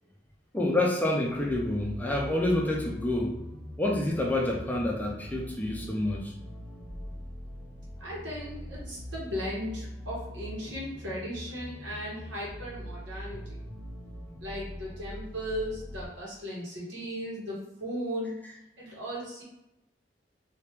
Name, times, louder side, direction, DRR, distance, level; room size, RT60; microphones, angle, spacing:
voice 1, 0.5-3.4 3.8-6.3, left 1 dB, 10° left, -1 dB, 0.4 m, -28 dB
sound 1, 1.3-16.1, equal, 60° right, 1.3 m, -42 dB
voice 2, 8.0-13.6 14.4-18.3 18.8-19.4, equal, 85° right, -5 dB, 1.5 m, -37 dB
3.0 x 2.8 x 3.4 m, 0.89 s
head